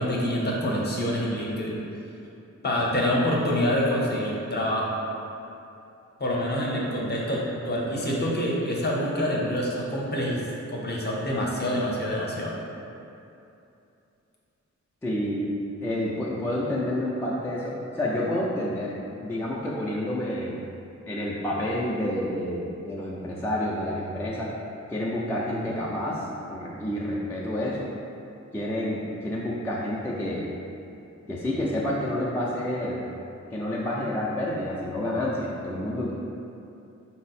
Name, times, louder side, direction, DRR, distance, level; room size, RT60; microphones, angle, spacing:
voice 1, 0.0-1.7 2.6-4.9 6.2-10.4 10.7-12.5, equal, 35° left, -4 dB, 0.7 m, -26 dB
voice 2, 15.0-15.5 15.8-18.9 19.2-20.6 21.1-24.5 24.9-27.9 28.5-30.5 31.3-33.0 33.5-36.1, left 1 dB, 10° left, -6 dB, 0.3 m, -29 dB
4.6 x 2.0 x 4.1 m, 2.7 s
wide cardioid pair, 135°, 29 cm